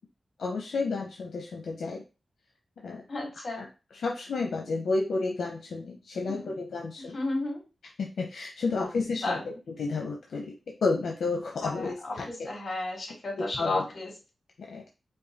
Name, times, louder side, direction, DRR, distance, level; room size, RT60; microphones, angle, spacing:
voice 1, 0.4-2.0 2.8-3.0 3.5-3.7 3.9-7.2 8.0-9.4 9.7-10.5 10.8-12.5 13.4-13.9 14.6-14.8, left 3 dB, 90° left, 0 dB, 0.7 m, -31 dB
voice 2, 3.1-3.7 6.3-6.5 7.0-7.6 8.8-8.9 9.2-9.4 11.6-12.1 12.4-14.1, left 2 dB, 50° left, -2 dB, 2.8 m, -33 dB
5.2 x 2.3 x 4.0 m, 0.30 s
wide cardioid pair, 95°, 0 cm